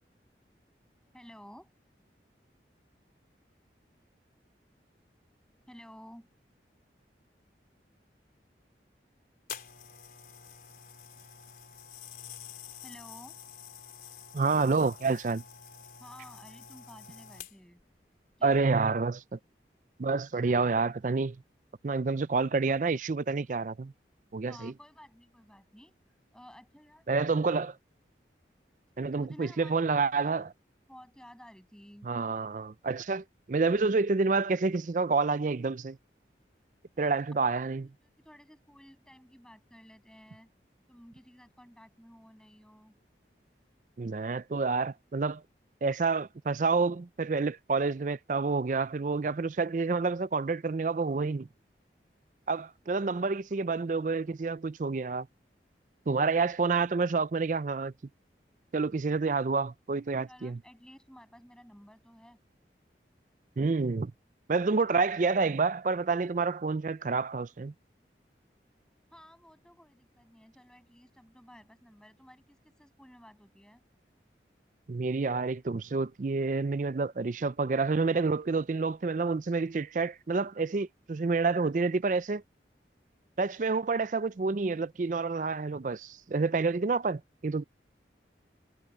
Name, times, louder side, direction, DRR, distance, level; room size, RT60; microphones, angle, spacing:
voice 1, 1.1-1.7 5.7-6.3 12.8-13.4 16.0-17.8 18.4-18.7 24.5-25.9 26.3-27.6 29.2-30.3 30.9-32.1 37.8-40.5 40.9-43.0 60.3-62.4 64.7-64.8 69.1-73.8, equal, 5° left, 7.3 m, -53 dB
sound 1, 9.5-17.8 18.6-18.8, left 8 dB, 50° left, 4.5 m, -48 dB
voice 2, 14.3-15.4 18.4-19.4 20.0-21.4 21.8-23.9 24.3-24.7 27.1-27.7 29.0-30.5 32.0-36.0 37.0-37.9 44.0-45.4 45.8-51.5 52.5-55.3 56.1-57.9 58.7-60.6 63.6-64.1 64.5-67.7 74.9-82.4 83.4-87.6, right 4 dB, 45° right, 0.4 m, -28 dB
head